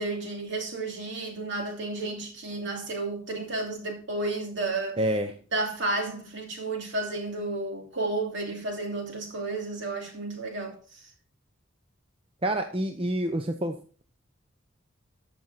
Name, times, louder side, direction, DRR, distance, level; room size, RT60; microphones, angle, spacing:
voice 1, 0.0-5.0 5.5-11.1, right 2 dB, 60° right, 3.0 m, -32 dB
voice 2, 5.0-5.3 12.4-13.7, right 1 dB, 30° right, 0.7 m, -27 dB
14.0 x 6.1 x 4.1 m
head